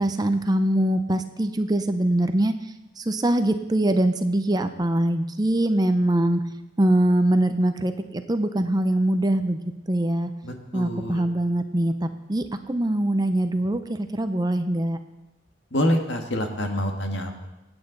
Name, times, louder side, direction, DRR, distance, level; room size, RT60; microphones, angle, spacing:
voice 1, 0.0-2.5 3.0-6.4 6.8-9.6 9.9-10.3 10.7-15.0, right 1 dB, 20° right, 9 dB, 0.6 m, -23 dB
voice 2, 10.4-11.3 15.7-17.5, equal, 65° left, 4 dB, 1.7 m, -26 dB
26.0 x 8.9 x 4.0 m, 1.0 s
head